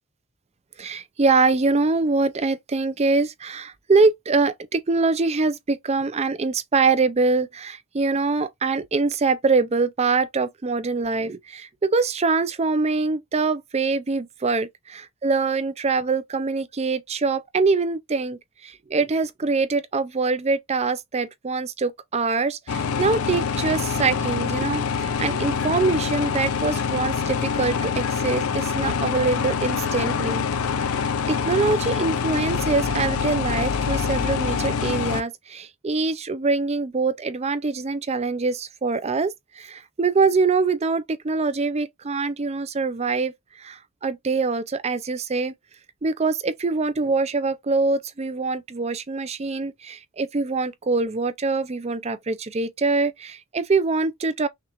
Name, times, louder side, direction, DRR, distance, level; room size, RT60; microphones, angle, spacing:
voice 1, 0.8-30.4 30.9-45.5 46.0-54.5, right 4 dB, 30° right, 0.5 m, -24 dB
sound 1, 22.7-35.2, left 6 dB, 70° left, 0.5 m, -25 dB
5.8 x 2.4 x 3.0 m
head